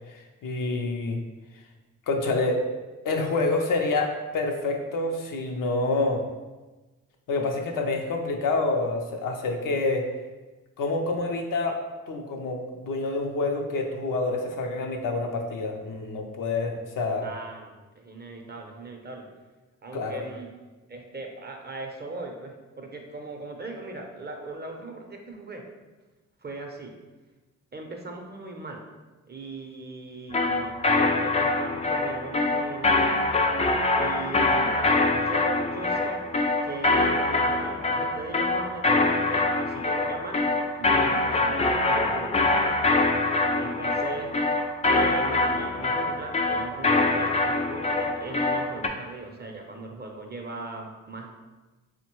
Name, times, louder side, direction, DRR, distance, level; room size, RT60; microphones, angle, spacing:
voice 1, 0.1-1.2 2.1-2.6 3.0-6.3 7.3-10.1 10.8-11.8 12.1-17.3 19.9-20.2, left 3 dB, 70° left, 3 dB, 0.6 m, -27 dB
voice 2, 17.2-19.3 19.8-20.5 20.9-25.7 26.4-27.0 27.7-28.8 29.3-33.0 33.9-36.3 36.6-40.5 40.7-42.5 43.6-44.3 44.8-51.4, right 3 dB, 30° right, 2 dB, 0.6 m, -39 dB
sound 1, 30.3-48.9, left 2 dB, 20° left, 0.3 m, -24 dB
3.8 x 2.1 x 3.0 m, 1.2 s
supercardioid pair, 50°, 34 cm